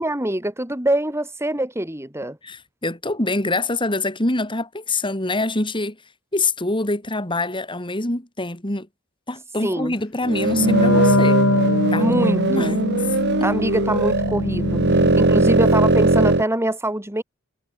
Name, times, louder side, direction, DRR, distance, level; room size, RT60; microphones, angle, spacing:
voice 1, 0.0-2.4 9.6-9.9 12.0-12.8 13.4-17.2, right 1 dB, 10° right, 3.8 m, -24 dB
voice 2, 2.4-6.0 6.3-8.9 9.3-11.4 11.9-12.7, left 2 dB, 25° left, 4.0 m, -25 dB
sound 1, 10.2-16.4, right 2 dB, 50° right, 2.0 m, -19 dB
Wind instrument woodwind instrument, 10.5-15.6, left 1 dB, 70° left, 3.2 m, -22 dB
head